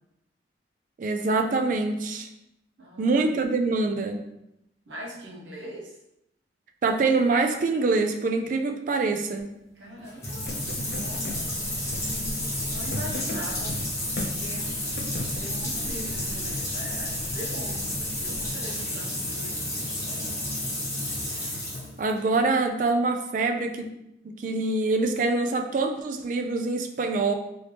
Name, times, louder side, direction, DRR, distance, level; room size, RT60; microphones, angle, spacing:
voice 1, 1.0-2.3 3.0-4.2 6.8-9.5 22.0-23.9 24.2-27.3, right 3 dB, 45° right, 5 dB, 0.3 m, -25 dB
voice 2, 2.8-3.3 4.9-6.0 9.7-10.5 10.9-11.4 12.3-13.8 14.2-15.1 15.4-20.5, equal, 85° right, -3 dB, 1.0 m, -42 dB
sound 1, 10.0-22.3, left 1 dB, 15° left, 1.0 m, -31 dB
sound 2, 10.4-18.5, left 1 dB, 55° left, 0.6 m, -38 dB
3.0 x 2.8 x 3.2 m, 0.84 s
head